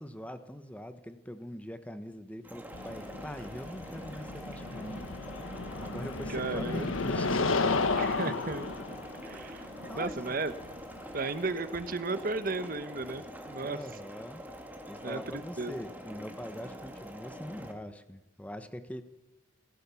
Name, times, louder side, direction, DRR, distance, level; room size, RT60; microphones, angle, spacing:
voice 1, 0.0-5.1 5.8-8.1 9.2-9.3 9.9-10.3 13.6-14.4 14.9-19.0, equal, 5° left, 10 dB, 1.0 m, -43 dB
sound 1, 2.4-17.7, equal, 10° right, 2.1 m, -45 dB
sound 2, 2.7-11.6, left 3 dB, 85° left, 1.4 m, -33 dB
voice 2, 6.3-6.8 8.0-8.7 9.2-9.7 9.9-10.5 11.1-13.8 15.0-15.8, right 3 dB, 45° right, 12 dB, 1.1 m, -34 dB
30.0 x 15.0 x 7.1 m, 1.0 s
head